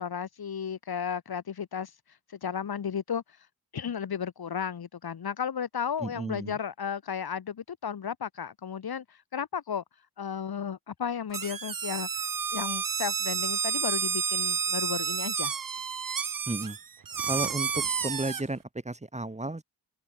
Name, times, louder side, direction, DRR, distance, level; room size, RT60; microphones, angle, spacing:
voice 1, 0.0-1.9 2.4-3.2 3.7-9.8 10.2-12.1 12.5-15.5, left 7 dB, 65° left, 1.2 m, -34 dB
voice 2, 6.0-6.6 16.5-16.8 17.3-19.6, right 2 dB, 15° right, 1.1 m, -33 dB
sound 1, 11.3-18.4, right 6 dB, 55° right, 1.3 m, -30 dB
open air
wide cardioid pair, 75°, 40 cm